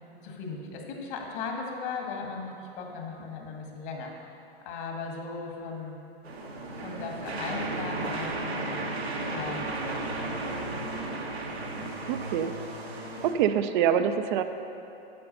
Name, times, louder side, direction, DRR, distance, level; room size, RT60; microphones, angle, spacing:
voice 1, 0.2-4.1 4.6-6.0 6.8-10.5, left 4 dB, 55° left, 1 dB, 2.0 m, -37 dB
sound 1, 6.2-13.3, right 2 dB, 85° right, 1.4 m, -34 dB
voice 2, 12.1-12.5 13.2-14.4, right 9 dB, 55° right, 9 dB, 0.6 m, -25 dB
8.7 x 7.7 x 5.5 m, 2.9 s
hypercardioid pair, 110°, 31 cm